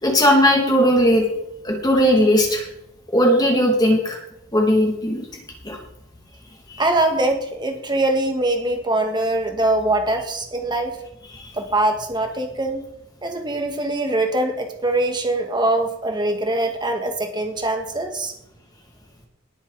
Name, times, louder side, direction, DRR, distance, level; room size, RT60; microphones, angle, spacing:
voice 1, 0.0-1.3 1.6-2.6 3.1-4.2 4.5-5.2 5.6-5.8 6.7-6.8 11.3-11.5, equal, 20° left, 0 dB, 2.4 m, -17 dB
voice 2, 6.8-10.9 11.5-12.8 13.2-18.3, right 2 dB, 25° right, 4 dB, 1.8 m, -22 dB
19.0 x 8.1 x 4.1 m, 0.83 s
head